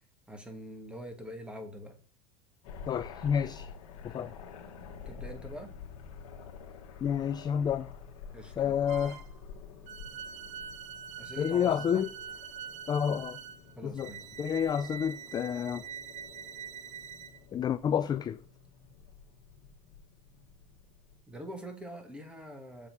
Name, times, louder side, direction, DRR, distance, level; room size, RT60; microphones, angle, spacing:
voice 1, 0.3-2.0 5.1-5.7 8.3-8.8 11.2-12.0 13.8-14.2 21.3-22.9, equal, 5° right, 1.7 m, -44 dB
sound 1, 2.6-21.2, left 6 dB, 70° left, 1.6 m, -49 dB
voice 2, 2.9-3.7 4.0-4.3 7.0-7.9 8.6-9.2 11.4-12.1 12.9-13.4 13.8-14.1 14.4-15.9 17.5-18.4, left 8 dB, 25° left, 0.3 m, -29 dB
sound 2, 8.9-9.4 9.9-17.4, right 7 dB, 40° right, 0.7 m, -44 dB
6.7 x 3.6 x 4.7 m
hypercardioid pair, 95°, 18 cm